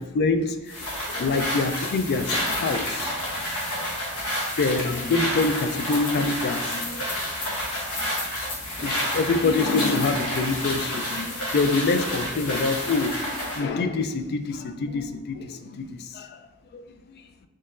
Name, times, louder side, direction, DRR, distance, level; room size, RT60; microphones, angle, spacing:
voice 1, 0.0-3.2 4.0-4.2 4.6-7.5 8.8-17.2, left 3 dB, 45° left, 8 dB, 0.3 m, -26 dB
sound 1, 0.7-13.7, equal, 80° left, 1.0 m, -29 dB
4.2 x 3.0 x 2.4 m, 1.0 s
head